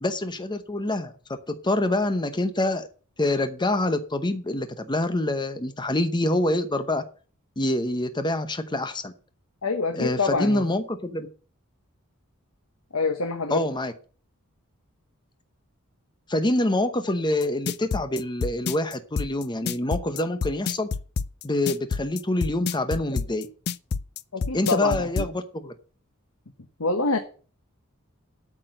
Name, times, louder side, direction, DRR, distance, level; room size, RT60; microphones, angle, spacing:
voice 1, 0.0-1.1 1.6-2.9 3.2-7.0 7.6-9.1 9.9-11.3 13.5-13.9 16.3-20.9 21.4-23.5 24.5-25.7, left 1 dB, 20° left, 9 dB, 0.9 m, -26 dB
voice 2, 9.6-10.6 12.9-13.7 24.3-25.3 26.8-27.2, left 3 dB, 75° left, 7 dB, 1.2 m, -26 dB
sound 1, 17.4-25.3, left 5 dB, 50° left, 0.4 m, -28 dB
8.8 x 6.1 x 7.7 m, 0.39 s
head